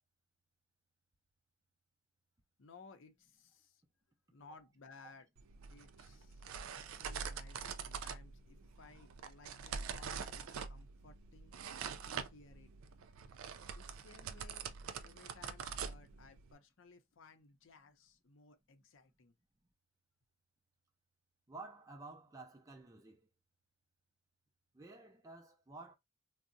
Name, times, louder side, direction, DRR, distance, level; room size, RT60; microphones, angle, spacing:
voice 1, 2.6-3.8 4.3-5.3 5.7-11.5 12.1-12.7 13.7-14.7 15.0-19.4, left 4 dB, 70° left, 0.6 m, -60 dB
sound 1, 5.4-16.5, right 6 dB, 85° right, 0.4 m, -45 dB
voice 2, 21.5-23.3 24.7-25.9, right 3 dB, 15° right, 0.4 m, -52 dB
3.6 x 2.0 x 2.6 m
head